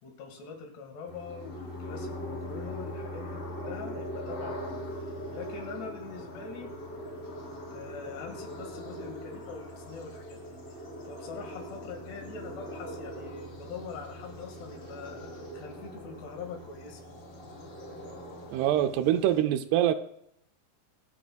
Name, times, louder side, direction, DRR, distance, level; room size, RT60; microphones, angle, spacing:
voice 1, 0.0-6.7 7.7-10.6 11.1-17.0, left 5 dB, 80° left, 3 dB, 4.0 m, -43 dB
sound 1, 1.1-19.4, equal, 35° left, 3.7 m, -41 dB
voice 2, 18.5-19.9, right 11 dB, 85° right, 11 dB, 2.6 m, -24 dB
25.0 x 8.4 x 2.3 m, 0.72 s
omnidirectional pair, 4.7 m